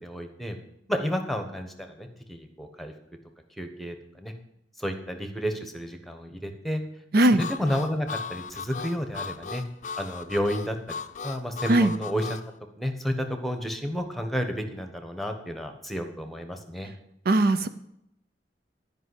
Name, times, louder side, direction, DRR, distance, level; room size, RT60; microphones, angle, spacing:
voice 1, 0.0-0.6 0.9-2.9 3.6-4.3 4.8-6.8 7.3-9.6 10.0-11.0 11.2-12.2 12.8-16.9, equal, ahead, 6 dB, 1.2 m, -31 dB
Harmonica, 7.4-12.5, left 5 dB, 45° left, 0.5 m, -37 dB
voice 2, 17.3-17.7, right 1 dB, 55° right, 11 dB, 0.5 m, -19 dB
12.5 x 5.4 x 8.2 m, 0.78 s
head